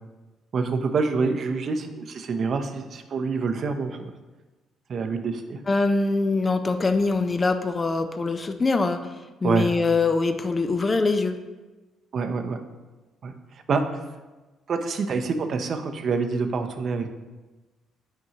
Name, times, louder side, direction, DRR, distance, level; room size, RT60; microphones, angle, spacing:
voice 1, 0.5-4.1 4.9-5.6 9.4-9.7 12.1-12.6 13.2-13.3 13.7-13.8 14.7-17.1, right 4 dB, 55° right, 7 dB, 0.6 m, -26 dB
voice 2, 5.7-11.4, left 3 dB, 35° left, 8 dB, 0.5 m, -23 dB
7.9 x 4.5 x 2.9 m, 1.2 s
hypercardioid pair, 55°, 0 cm